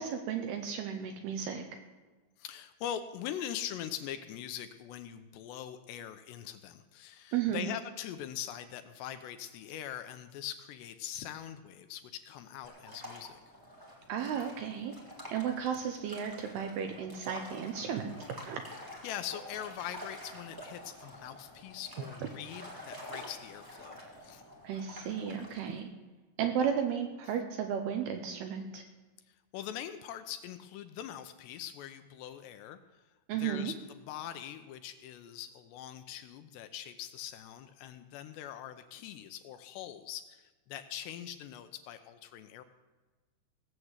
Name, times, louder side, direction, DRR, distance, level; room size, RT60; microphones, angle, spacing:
voice 1, 0.0-1.6 7.3-7.7 14.1-14.9 15.3-18.6 24.6-25.9 26.4-28.8 33.3-33.7, right 8 dB, 75° right, 5 dB, 2.6 m, -34 dB
voice 2, 2.4-13.5 19.0-24.4 29.3-32.8 33.3-42.6, left 10 dB, 80° left, 9 dB, 2.6 m, -42 dB
sound 1, 12.6-25.8, left 1 dB, 20° right, 0.6 m, -48 dB
17.5 x 7.4 x 8.0 m, 1.3 s
omnidirectional pair, 5.3 m